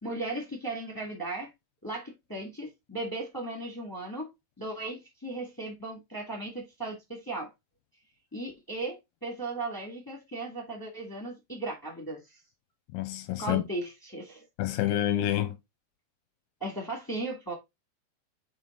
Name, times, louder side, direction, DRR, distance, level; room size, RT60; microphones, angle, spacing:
voice 1, 0.0-1.5 1.8-4.3 4.6-7.5 8.3-12.2 13.4-14.4 16.6-17.5, right 2 dB, 10° left, 1.4 m, -36 dB
voice 2, 12.9-13.6 14.6-15.6, left 13 dB, 80° left, 2.1 m, -28 dB
7.5 x 4.9 x 3.9 m
omnidirectional pair, 4.6 m